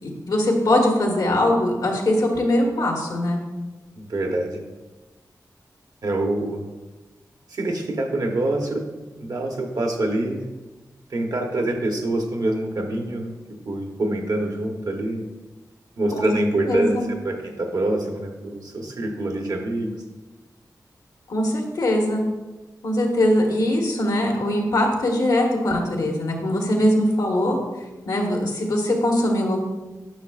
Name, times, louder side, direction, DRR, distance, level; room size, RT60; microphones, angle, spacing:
voice 1, 0.0-3.4 16.1-16.2 16.7-17.1 21.3-22.2 22.8-27.6 28.1-29.7, left 1 dB, 85° left, 0 dB, 1.4 m, -21 dB
voice 2, 4.0-4.6 6.0-6.6 7.5-8.9 9.1-10.5 11.1-13.3 13.7-15.3 16.0-19.9, right 1 dB, 65° right, 3 dB, 1.0 m, -25 dB
10.0 x 6.1 x 2.4 m, 1.1 s
wide cardioid pair, 95°, 7 cm